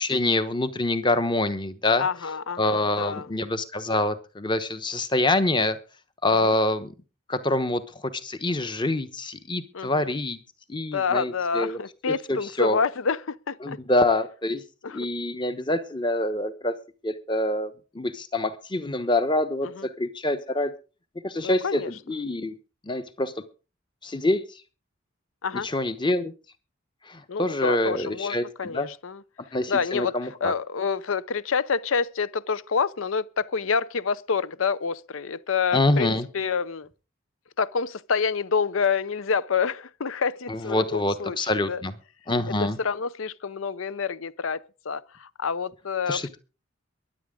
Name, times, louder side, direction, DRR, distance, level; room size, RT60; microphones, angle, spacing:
voice 1, 0.0-2.0 2.6-5.8 6.2-6.9 7.3-7.8 8.2-10.4 10.7-11.8 12.1-12.8 13.6-14.6 14.9-16.7 17.0-20.7 21.2-22.6 22.8-23.3 24.0-24.4 25.6-26.3 27.1-28.9 29.5-30.5 35.7-36.3 40.5-41.9 42.3-42.8 46.1-46.4, left 2 dB, 25° left, 1.0 m, -26 dB
voice 2, 2.0-3.3 6.3-6.5 9.7-10.1 10.9-13.8 14.8-15.1 19.6-19.9 21.4-21.9 25.4-25.7 27.3-29.2 29.7-30.1 30.4-36.9 37.6-41.8 42.5-46.4, left 5 dB, 85° left, 0.7 m, -28 dB
23.0 x 8.4 x 3.8 m
head